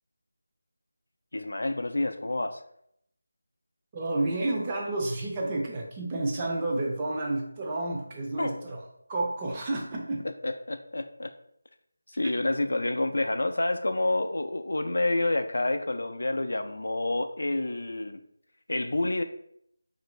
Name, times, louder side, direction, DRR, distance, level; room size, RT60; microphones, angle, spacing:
voice 1, 1.3-2.6 8.4-8.7 10.2-11.3 12.1-18.2 18.7-19.2, left 2 dB, 70° left, 8 dB, 0.3 m, -28 dB
voice 2, 3.9-8.8 9.1-10.3 12.2-12.3, right 2 dB, 20° right, -1 dB, 0.4 m, -30 dB
2.8 x 2.5 x 3.0 m, 0.72 s
figure-of-eight pair, 165°, 0 cm